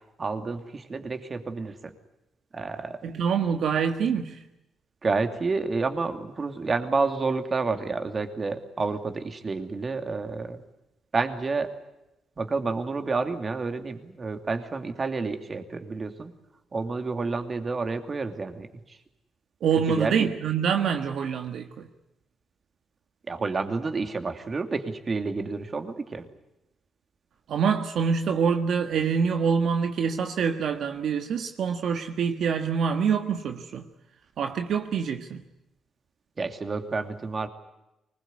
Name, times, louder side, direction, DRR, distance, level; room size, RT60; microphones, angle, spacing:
voice 1, 0.2-1.9 2.5-3.1 5.0-10.6 11.1-11.7 12.4-16.3 16.7-19.0 19.9-20.3 23.3-26.3 36.4-37.5, right 4 dB, 35° right, 2.7 m, -29 dB
voice 2, 3.0-4.4 19.6-21.9 27.5-33.8 34.4-35.4, right 6 dB, 65° right, 1.6 m, -25 dB
24.5 x 20.5 x 9.7 m
cardioid pair, 90°, 0 cm